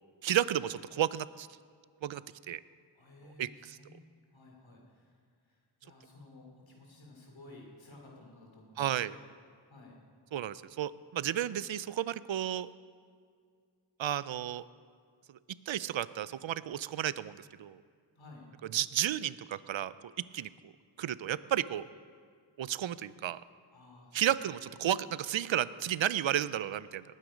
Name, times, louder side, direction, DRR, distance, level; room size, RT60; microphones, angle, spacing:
voice 1, 0.2-1.5 2.0-2.6 3.4-3.8 8.8-9.1 10.3-12.7 14.0-14.6 15.7-17.8 18.7-19.9 20.3-20.5 21.0-21.9 22.6-23.4 24.1-27.0, right 11 dB, 80° right, 17 dB, 0.5 m, -32 dB
voice 2, 2.9-5.1 5.5-9.2 9.7-9.9 18.2-18.5 23.7-24.3 24.8-25.0, left 2 dB, 80° left, 0 dB, 3.2 m, -54 dB
19.0 x 9.2 x 5.1 m, 2.1 s
wide cardioid pair, 60°, 46 cm